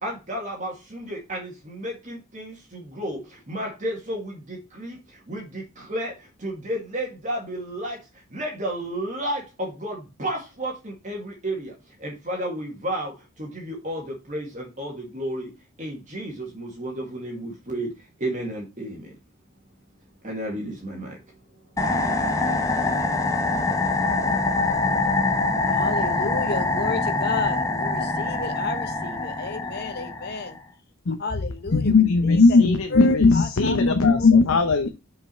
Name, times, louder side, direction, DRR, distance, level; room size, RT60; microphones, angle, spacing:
voice 1, 0.0-15.5 15.8-19.1 20.2-21.2, right 1 dB, 35° right, 0 dB, 2.0 m, -32 dB
sound 1, 21.8-30.6, left 3 dB, 15° left, 1.0 m, -24 dB
voice 2, 25.6-30.6 31.2-32.6 32.9-33.8, left 4 dB, 50° left, 7 dB, 1.1 m, -31 dB
voice 3, 31.7-34.9, left 3 dB, 80° left, 7 dB, 0.8 m, -17 dB
5.8 x 5.2 x 4.3 m, 0.26 s
head